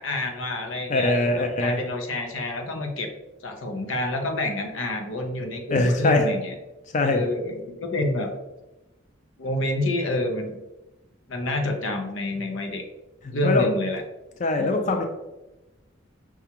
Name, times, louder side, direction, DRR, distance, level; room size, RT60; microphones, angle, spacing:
voice 1, 0.0-3.1 3.4-6.5 7.0-8.3 9.4-10.6 11.3-12.8 13.3-14.0 14.6-15.0, left 2 dB, 90° left, 4 dB, 0.6 m, -28 dB
voice 2, 0.9-1.8 5.7-6.3 6.9-7.2 13.2-13.7 14.4-15.0, left 2 dB, 40° left, 4 dB, 0.4 m, -22 dB
5.7 x 2.4 x 2.8 m, 1.0 s
head